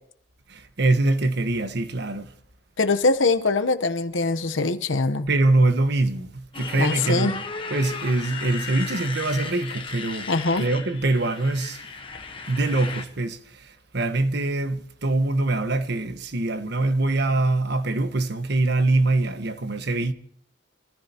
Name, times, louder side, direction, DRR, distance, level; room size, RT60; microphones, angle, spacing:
voice 1, 0.5-2.3 5.3-7.4 7.7-10.3 10.6-11.8 12.5-20.1, right 2 dB, 60° right, 1.3 m, -24 dB
voice 2, 2.8-5.3 6.8-7.3 10.3-10.7, left 3 dB, 85° left, 1.0 m, -22 dB
Motorcycle, 6.5-13.0, left 4 dB, 30° left, 1.2 m, -35 dB
26.0 x 14.5 x 3.0 m
head